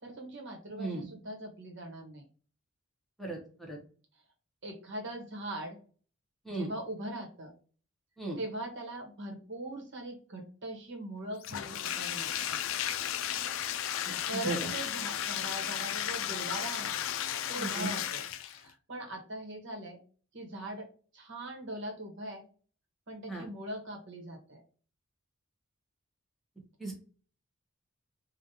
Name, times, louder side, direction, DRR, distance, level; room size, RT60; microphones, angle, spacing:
voice 1, 0.0-2.2 4.6-5.8 6.5-7.5 8.4-12.6 14.0-20.0 20.3-20.9 21.1-22.4 23.1-24.6, right 1 dB, 60° right, 2 dB, 1.2 m, -41 dB
Bathtub (filling or washing), 11.4-18.7, left 10 dB, 65° left, 0.3 m, -34 dB
voice 2, 17.6-17.9 23.3-23.4 26.8-26.9, right 3 dB, ahead, -1 dB, 0.8 m, -35 dB
5.0 x 2.4 x 2.8 m, 0.39 s
head